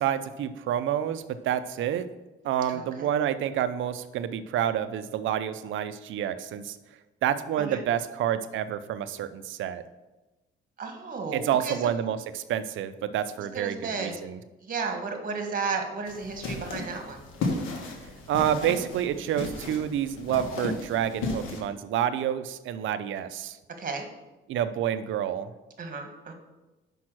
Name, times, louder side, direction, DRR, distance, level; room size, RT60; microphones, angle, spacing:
voice 1, 0.0-2.1 2.4-6.8 7.2-9.8 11.3-14.4 18.3-23.6 24.5-25.5, right 10 dB, 75° right, 12 dB, 0.6 m, -28 dB
voice 2, 2.7-3.1 7.6-7.8 10.8-11.9 13.5-14.1 14.6-17.2 23.8-24.0 25.8-26.3, right 4 dB, 45° right, 4 dB, 1.5 m, -33 dB
sound 1, 16.1-21.6, left 3 dB, 80° left, 1.6 m, -34 dB
6.0 x 5.4 x 6.1 m, 1.1 s
cardioid pair, 90°, 20 cm